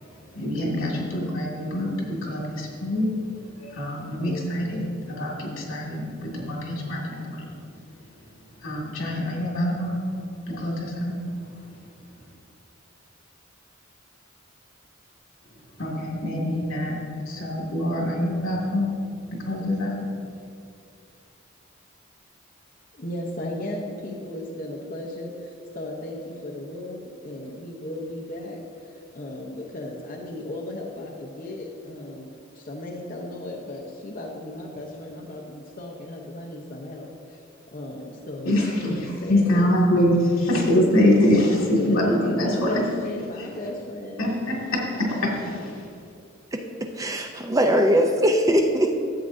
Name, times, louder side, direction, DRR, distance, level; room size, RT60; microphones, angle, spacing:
voice 1, 0.1-7.6 8.6-10.0 10.5-11.3 15.8-18.9 19.3-20.0 38.4-42.7 43.4-43.5 44.2-45.9, left 1 dB, 85° left, -2 dB, 2.1 m, -25 dB
voice 2, 22.9-32.3 32.5-37.4 37.7-38.5 38.8-39.7 41.9-44.3, left 1 dB, 45° left, -3 dB, 0.8 m, -35 dB
voice 3, 46.5-48.9, equal, 15° right, 4 dB, 0.4 m, -21 dB
13.0 x 7.7 x 2.6 m, 2.4 s
head